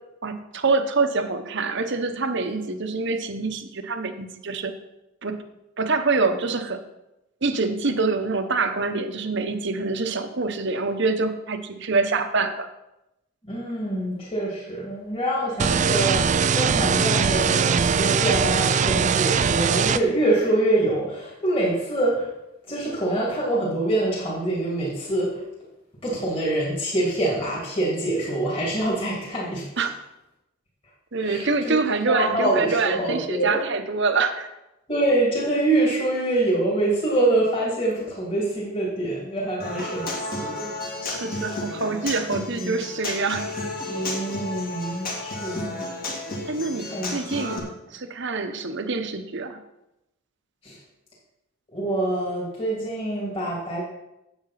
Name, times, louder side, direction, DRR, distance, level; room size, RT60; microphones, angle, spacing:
voice 1, 0.2-4.7 5.2-5.4 5.8-6.8 7.4-12.7 29.8-29.9 31.1-34.5 41.1-43.5 46.5-47.6 47.9-49.6, right 3 dB, 60° right, 8 dB, 1.0 m, -25 dB
voice 2, 13.4-22.3 22.7-25.4 26.0-29.8 31.2-31.8 32.1-33.6 34.9-40.1 40.4-40.7 42.5-42.7 43.9-45.8 46.9-47.6 50.6-50.8 51.7-53.8, right 1 dB, 25° left, -6 dB, 2.7 m, -25 dB
sound 1, 15.6-20.0, right 6 dB, 35° right, 0.4 m, -21 dB
Human voice / Acoustic guitar, 39.6-47.6, left 2 dB, 45° left, 2.3 m, -32 dB
8.9 x 8.1 x 5.8 m, 0.90 s
head